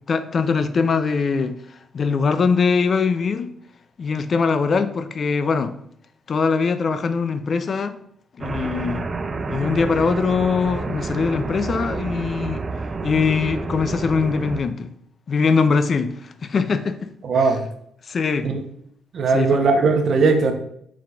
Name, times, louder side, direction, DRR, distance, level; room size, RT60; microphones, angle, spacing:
voice 1, 0.1-1.6 1.9-3.5 4.0-5.7 6.3-8.0 8.4-9.0 9.5-12.6 13.0-14.9 15.3-17.1 18.1-18.5 19.3-19.7, left 5 dB, 45° left, 0.4 m, -22 dB
sound 1, 8.4-14.6, right 3 dB, 35° right, 0.3 m, -29 dB
voice 2, 17.2-17.6 18.4-18.6 19.1-20.5, right 4 dB, 60° right, 0.7 m, -18 dB
4.7 x 3.7 x 2.3 m
cardioid pair, 90°, 0 cm